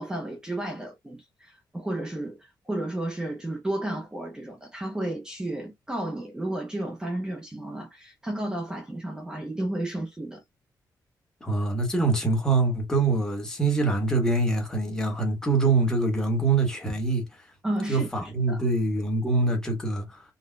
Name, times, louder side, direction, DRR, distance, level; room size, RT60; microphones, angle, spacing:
voice 1, 0.0-10.4 17.6-18.6, right 1 dB, 10° right, 0.5 m, -32 dB
voice 2, 11.4-17.2 17.9-20.2, right 3 dB, 10° left, 1.1 m, -24 dB
4.0 x 2.1 x 2.2 m
wide cardioid pair, 170°, 7 cm